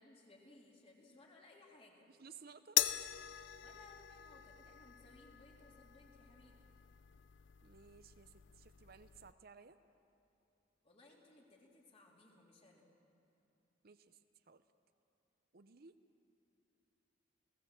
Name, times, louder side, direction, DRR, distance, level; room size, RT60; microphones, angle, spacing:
voice 1, 0.0-2.1 3.5-6.7 10.8-12.8, left 2 dB, 30° left, -1 dB, 3.5 m, -63 dB
voice 2, 2.1-3.1 7.6-9.8 13.8-14.6 15.5-16.0, right 5 dB, 55° right, 10 dB, 0.7 m, -59 dB
sound 1, 2.8-9.3, left 13 dB, 90° left, 0.6 m, -42 dB
29.5 x 17.5 x 7.4 m, 2.7 s
head